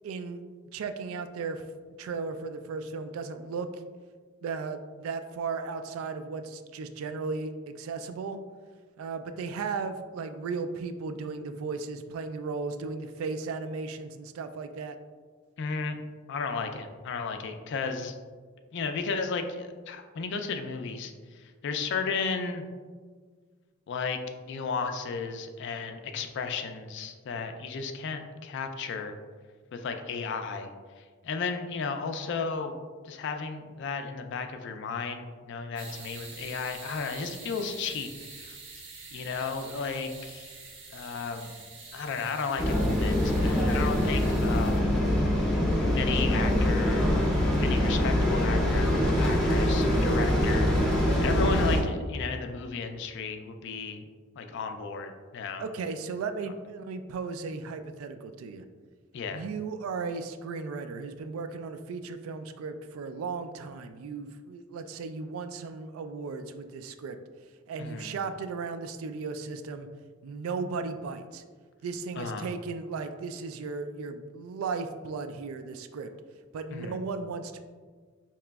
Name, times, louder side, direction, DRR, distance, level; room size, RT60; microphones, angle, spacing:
voice 1, 0.0-0.4 0.7-1.6 2.0-3.7 4.4-7.5 7.8-8.4 9.0-15.0 55.6-58.6 59.3-67.2 67.7-69.9 70.2-71.4 71.8-76.1 76.5-77.6, right 4 dB, 80° right, 10 dB, 0.3 m, -35 dB
voice 2, 15.6-16.0 16.3-18.1 18.7-22.6 23.9-29.2 29.7-30.7 31.0-32.7 33.0-38.1 38.4-38.6 39.1-40.5 40.9-41.5 41.9-44.9 46.0-47.1 47.6-54.1 54.4-55.6 59.1-59.4 67.8-68.1 72.2-72.5 76.7-77.0, left 5 dB, 60° left, 6 dB, 0.3 m, -34 dB
sound 1, 35.8-44.8, right 4 dB, 60° right, 0.7 m, -46 dB
sound 2, 42.6-51.8, left 1 dB, 5° left, 0.5 m, -24 dB
4.8 x 2.9 x 2.3 m, 1.6 s
head